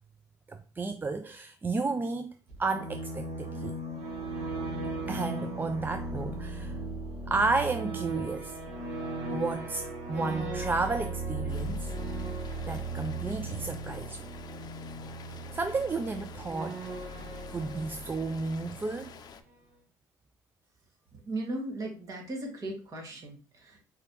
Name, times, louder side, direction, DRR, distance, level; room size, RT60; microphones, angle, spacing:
voice 1, 0.5-2.3 2.6-3.8 5.1-6.8 7.3-8.6 9.3-11.9 12.6-14.2 15.3-16.9 17.5-19.2, right 3 dB, 20° right, 0.4 m, -32 dB
sound 1, 2.5-19.1, right 2 dB, 75° right, 1.8 m, -37 dB
Rain, 11.5-19.4, left 7 dB, 45° left, 0.6 m, -49 dB
voice 2, 21.1-23.8, right 1 dB, 40° right, 2.0 m, -37 dB
4.7 x 3.3 x 3.0 m
hypercardioid pair, 65°, 9 cm